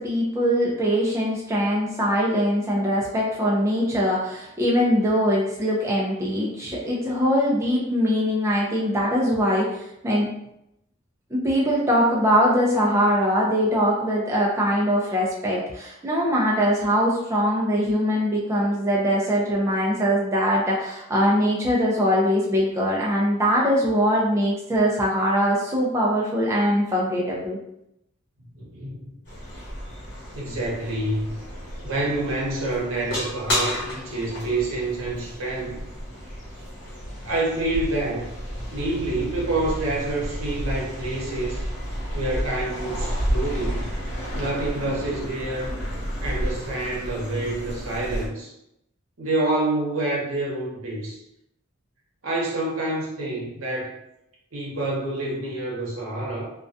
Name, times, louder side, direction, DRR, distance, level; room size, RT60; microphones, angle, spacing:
voice 1, 0.0-10.3 11.3-27.6, equal, 15° right, -4 dB, 0.4 m, -22 dB
voice 2, 28.5-29.1 30.3-31.4 31.8-35.8 37.2-38.2 38.7-41.6 42.1-43.9 44.3-45.7 46.2-48.5 49.2-51.2 52.2-54.0 54.5-56.5, right 2 dB, 80° right, -3 dB, 0.8 m, -27 dB
sound 1, 29.3-48.3, equal, 55° left, 0.9 m, -31 dB
2.3 x 2.2 x 2.5 m, 0.82 s
head